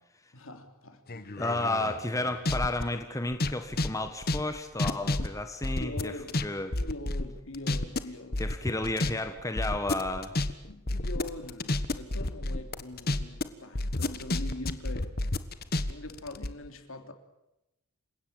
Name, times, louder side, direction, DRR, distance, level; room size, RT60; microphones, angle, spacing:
voice 1, 0.3-1.0 1.5-1.9 5.7-6.4 6.7-8.4 10.7-15.2 15.9-17.1, left 1 dB, 65° left, 3.1 m, -42 dB
sound 1, 1.1-2.8 3.3-6.4 6.7-8.0 8.3-9.1 9.4-13.5 13.7-16.5, left 2 dB, 45° left, 1.4 m, -30 dB
voice 2, 1.4-6.1 6.4-6.8 8.4-10.3, left 2 dB, 15° left, 1.5 m, -32 dB
29.0 x 17.0 x 9.0 m
head